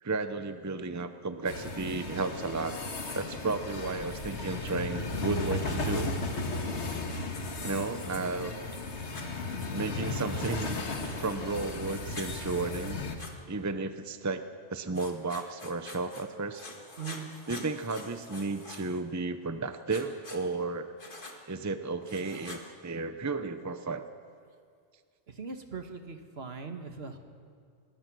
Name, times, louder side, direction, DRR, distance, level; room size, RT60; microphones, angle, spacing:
voice 1, 0.0-2.7 3.1-6.1 7.6-8.5 9.7-10.8 11.2-13.0 13.5-14.4 14.7-16.6 17.5-20.9 21.5-24.1, right 3 dB, 15° right, 9 dB, 0.7 m, -33 dB
sound 1, 1.4-13.1, left 3 dB, 75° left, 1.9 m, -35 dB
Writing, 9.1-9.3 10.4-11.3 12.1-12.3 13.2-13.3 14.9-16.2 16.5-19.0 19.9-20.4 21.0-21.4 22.0-22.6, left 2 dB, 45° left, 2.2 m, -46 dB
voice 2, 17.0-17.3 25.3-27.2, right 5 dB, 60° right, 6 dB, 1.7 m, -40 dB
26.0 x 20.0 x 6.2 m, 2.2 s
omnidirectional pair, 1.2 m